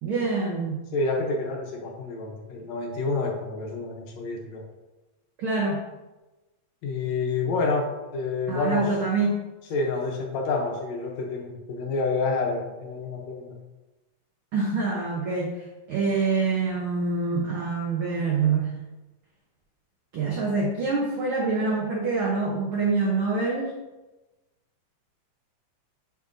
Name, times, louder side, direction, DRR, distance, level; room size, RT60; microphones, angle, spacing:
voice 1, 0.0-0.8 5.4-5.8 8.5-9.4 14.5-15.5 15.9-18.7 20.1-23.7, right 4 dB, 75° right, -2 dB, 1.2 m, -25 dB
voice 2, 0.9-4.6 6.8-8.9 9.7-13.6, left 3 dB, 70° left, 1 dB, 1.9 m, -28 dB
8.7 x 5.3 x 2.6 m, 1.1 s
omnidirectional pair, 3.5 m